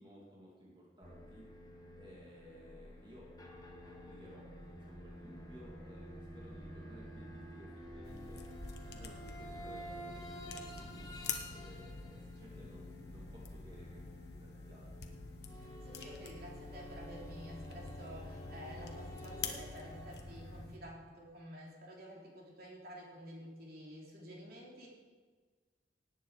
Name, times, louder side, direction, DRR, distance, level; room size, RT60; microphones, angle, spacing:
voice 1, 0.0-1.5 1.9-3.3 3.6-11.1 11.5-15.1, equal, 25° right, -4 dB, 2.6 m, -57 dB
sound 1, 1.0-20.7, equal, 20° left, 1.6 m, -50 dB
sound 2, 8.0-20.8, left 6 dB, 60° left, 1.3 m, -48 dB
voice 2, 15.5-24.9, equal, 55° right, -2 dB, 3.3 m, -50 dB
18.0 x 9.2 x 4.9 m, 1.5 s
head